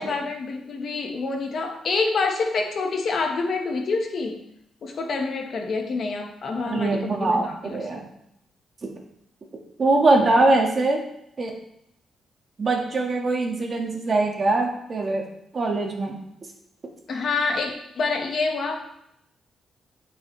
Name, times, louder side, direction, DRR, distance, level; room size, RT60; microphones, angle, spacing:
voice 1, 0.0-4.4 4.8-7.8 17.1-18.8, left 4 dB, 55° left, 3 dB, 1.3 m, -27 dB
voice 2, 6.7-8.0 9.8-11.0 11.4-11.5 12.6-15.2 15.5-16.2, right 2 dB, 35° right, 1 dB, 1.6 m, -22 dB
11.5 x 5.7 x 3.3 m, 0.76 s
cardioid pair, 130°, 0 cm